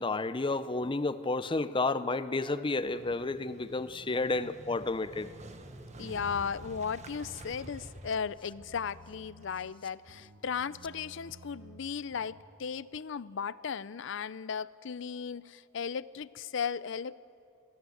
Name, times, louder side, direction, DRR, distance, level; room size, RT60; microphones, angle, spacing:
voice 1, 0.0-5.3, left 3 dB, 25° left, 13 dB, 0.6 m, -31 dB
Motorcycle, 2.8-9.5, right 1 dB, 35° right, 1.3 m, -49 dB
sound 1, 4.6-12.5, right 2 dB, 70° right, 1.6 m, -55 dB
voice 2, 6.0-17.2, left 6 dB, 70° left, 18 dB, 0.5 m, -36 dB
23.5 x 16.0 x 7.9 m, 2.6 s
head